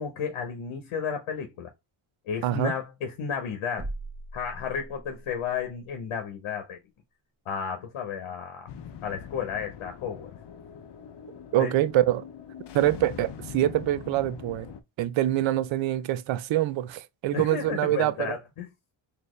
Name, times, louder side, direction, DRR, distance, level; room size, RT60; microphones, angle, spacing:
voice 1, 0.0-1.7 2.3-3.9 4.3-6.8 7.5-8.7 9.0-10.4 11.6-11.7 17.3-18.7, left 7 dB, 75° left, 1.0 m, -33 dB
voice 2, 2.4-2.7 11.5-12.2 12.7-14.7 15.0-18.4, right 14 dB, 70° right, 0.6 m, -25 dB
sound 1, 3.8-5.4, right 1 dB, 25° right, 1.2 m, -39 dB
sound 2, 8.7-14.8, left 8 dB, 55° left, 0.6 m, -43 dB
4.2 x 2.8 x 3.1 m
cardioid pair, 135°, 49 cm